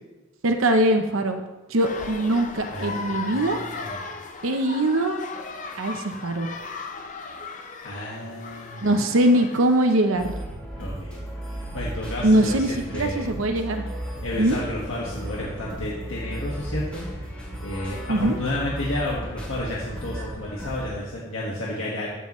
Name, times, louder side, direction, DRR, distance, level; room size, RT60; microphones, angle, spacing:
voice 1, 0.4-1.4 1.7-3.6 4.4-5.2 5.8-6.5 8.8-10.4 12.2-13.8 14.4-14.6 18.1-18.4, right 1 dB, 80° right, 5 dB, 0.8 m, -22 dB
sound 1, 1.8-10.1, left 4 dB, 35° left, 0.7 m, -37 dB
voice 2, 2.7-4.1 7.8-8.9 10.8-13.3 14.2-17.1 17.6-22.1, left 1 dB, 75° left, -5 dB, 1.7 m, -32 dB
sound 2, 10.2-20.9, right 1 dB, 5° left, 3.2 m, -35 dB
14.5 x 6.9 x 3.2 m, 1.2 s
head